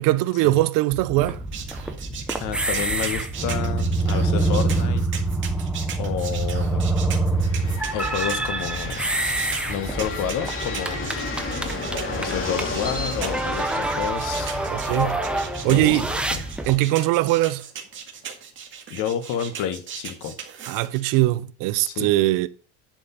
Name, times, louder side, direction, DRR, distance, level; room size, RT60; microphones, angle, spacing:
voice 1, 0.0-1.4 14.7-15.2 15.6-16.1 16.7-17.6 20.7-22.5, right 17 dB, 50° right, 0.7 m, -21 dB
sound 1, 0.9-16.8, right 2 dB, ahead, 0.6 m, -26 dB
sound 2, 1.5-21.0, right 7 dB, 25° right, 1.9 m, -37 dB
voice 2, 2.4-5.0 6.0-6.8 7.9-9.0 9.7-11.1 12.1-14.6 15.7-16.4 18.9-20.3 21.9-22.1, left 8 dB, 45° left, 1.5 m, -30 dB
sound 3, 7.3-17.1, left 3 dB, 30° left, 2.2 m, -34 dB
10.5 x 5.2 x 5.6 m
cardioid pair, 165°, 43 cm